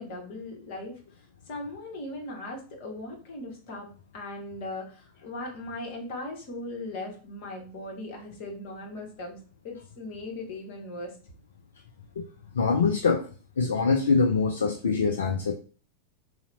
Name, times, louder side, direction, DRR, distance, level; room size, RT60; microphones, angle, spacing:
voice 1, 0.0-9.4 9.6-11.2, left 2 dB, 45° left, 0 dB, 1.0 m, -39 dB
voice 2, 12.5-13.3 13.6-15.5, left 4 dB, 65° left, 4 dB, 0.3 m, -24 dB
2.8 x 2.1 x 3.8 m, 0.38 s
figure-of-eight pair, 90°, 0 cm